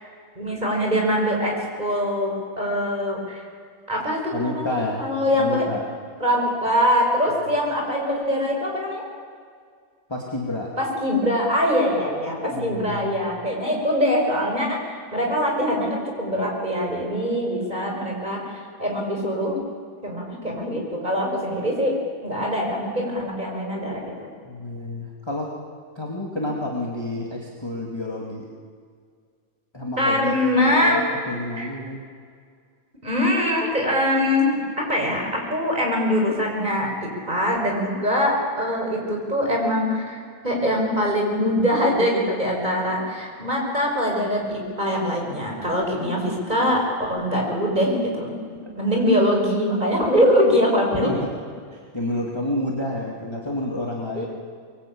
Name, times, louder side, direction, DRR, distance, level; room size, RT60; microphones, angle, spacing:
voice 1, 0.3-1.5 1.8-3.4 3.9-5.7 6.2-9.0 10.8-19.6 20.0-21.9 22.2-24.3 30.0-31.0 31.6-31.7 33.0-51.1 54.1-54.3, equal, 20° right, 0 dB, 6.1 m, -23 dB
voice 2, 4.3-5.0 5.3-5.8 10.1-10.7 12.5-13.2 24.4-25.5 26.0-28.5 29.7-32.0 48.6-48.7 50.9-51.3 51.7-54.2, left 1 dB, 15° left, -2 dB, 2.5 m, -29 dB
25.5 x 22.5 x 8.7 m, 2.1 s
omnidirectional pair, 2.1 m